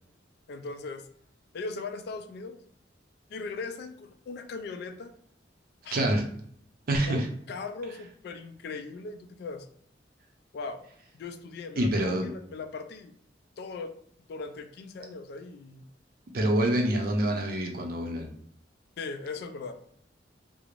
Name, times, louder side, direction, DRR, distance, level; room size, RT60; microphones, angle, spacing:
voice 1, 0.5-1.1 1.5-2.6 3.3-5.1 5.8-6.1 7.1-9.7 10.5-10.8 11.1-13.1 13.6-13.9 14.2-15.8 16.7-16.8 19.0-19.7, left 4 dB, 60° left, 8 dB, 0.3 m, -39 dB
voice 2, 5.9-6.2 6.9-7.3 11.8-12.3 16.3-18.3, right 1 dB, 50° right, 2 dB, 0.5 m, -26 dB
3.1 x 2.0 x 2.4 m, 0.65 s
head